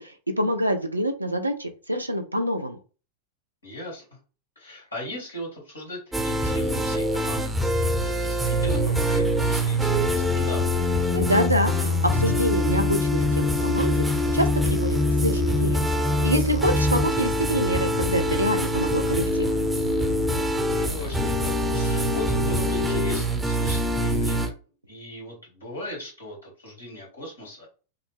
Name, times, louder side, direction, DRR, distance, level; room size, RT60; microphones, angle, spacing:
voice 1, 0.0-2.8 11.1-14.0 14.3-15.8 16.2-19.5, equal, 85° right, 6 dB, 0.7 m, -26 dB
voice 2, 3.6-4.0 4.6-7.5 7.8-10.6 20.6-24.5 24.9-27.7, left 1 dB, 75° left, -4 dB, 2.4 m, -38 dB
sound 1, 6.1-24.5, equal, 5° right, 0.9 m, -24 dB
sound 2, 8.5-23.2, left 6 dB, 55° left, 0.9 m, -36 dB
5.8 x 2.2 x 3.3 m, 0.35 s
figure-of-eight pair, 90°, 0 cm